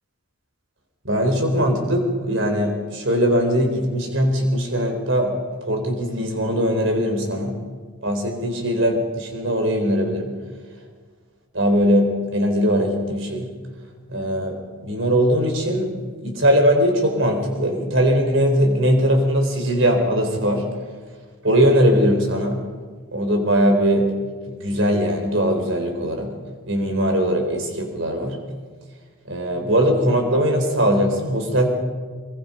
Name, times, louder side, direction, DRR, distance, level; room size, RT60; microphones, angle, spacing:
voice 1, 1.0-5.4 5.6-7.6 8.0-10.4 11.5-13.5 14.1-20.7 21.4-22.6 23.1-24.1 24.5-26.3 26.7-28.4 29.3-31.7, equal, 65° right, 4 dB, 4.4 m, -20 dB
24.0 x 22.5 x 5.3 m, 1.5 s
head